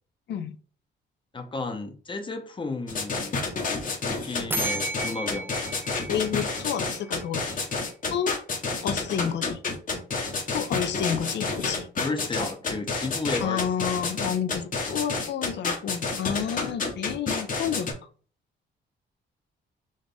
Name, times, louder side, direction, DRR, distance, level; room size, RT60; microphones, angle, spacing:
voice 1, 1.3-3.5 4.0-5.5 12.0-13.9, left 3 dB, 25° left, 0.8 m, -33 dB
sound 1, 2.9-17.9, left 4 dB, 45° left, 1.0 m, -29 dB
sound 2, 4.5-7.3, right 2 dB, 10° right, 0.3 m, -34 dB
voice 2, 6.1-7.6 8.1-8.3 8.8-9.6 10.5-11.9 13.4-17.9, left 8 dB, 60° left, 0.5 m, -30 dB
4.2 x 2.4 x 3.4 m
cardioid pair, 90°, 20 cm